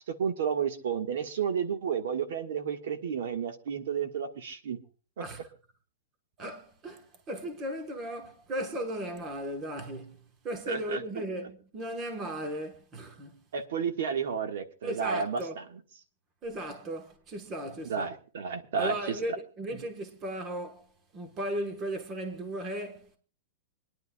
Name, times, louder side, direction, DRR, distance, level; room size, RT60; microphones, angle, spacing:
voice 1, 0.1-4.8 10.7-11.2 13.5-15.6 17.8-19.1, right 6 dB, 65° right, 1.4 m, -32 dB
voice 2, 6.4-13.4 14.8-15.6 16.4-18.1 18.7-20.9 21.1-23.2, right 1 dB, 20° right, 1.1 m, -36 dB
26.5 x 10.5 x 2.3 m
supercardioid pair, 180°, 0 cm